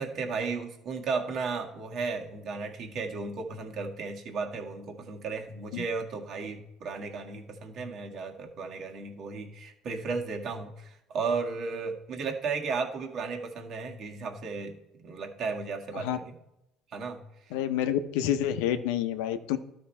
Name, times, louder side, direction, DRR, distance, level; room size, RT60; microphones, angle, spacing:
voice 1, 0.0-14.8 15.0-16.3 16.9-17.6, right 4 dB, 55° right, 2 dB, 1.7 m, -34 dB
voice 2, 17.5-19.6, left 10 dB, 90° left, 10 dB, 0.7 m, -28 dB
12.0 x 5.2 x 4.4 m, 0.88 s
supercardioid pair, 100°, 0 cm